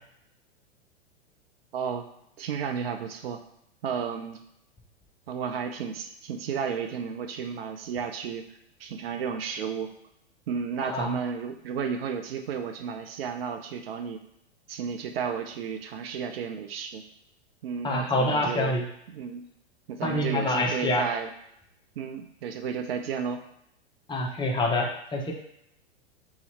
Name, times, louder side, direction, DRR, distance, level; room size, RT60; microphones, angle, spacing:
voice 1, 1.7-2.1 2.4-3.4 3.8-4.4 5.3-8.5 8.8-9.9 10.5-14.2 14.7-17.0 17.6-18.8 19.1-19.5 19.9-21.3 22.0-23.4, right 6 dB, 60° right, 6 dB, 0.7 m, -32 dB
voice 2, 17.8-18.8 20.0-21.1 24.1-25.3, left 1 dB, 15° left, -1 dB, 0.8 m, -26 dB
4.1 x 2.9 x 4.1 m, 0.76 s
hypercardioid pair, 105°, 33 cm